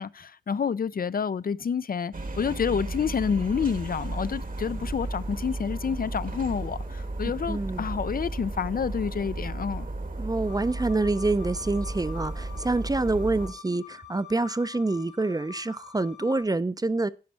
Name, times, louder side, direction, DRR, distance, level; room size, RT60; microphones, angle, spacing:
voice 1, 0.0-9.9, left 6 dB, 60° left, 0.4 m, -29 dB
sound 1, 2.1-13.5, right 2 dB, 55° right, 1.2 m, -34 dB
voice 2, 7.5-7.9 10.2-17.1, right 2 dB, 20° right, 0.4 m, -27 dB
sound 2, 10.4-16.4, left 10 dB, 85° left, 1.8 m, -47 dB
10.5 x 5.3 x 5.5 m
wide cardioid pair, 90°, 17 cm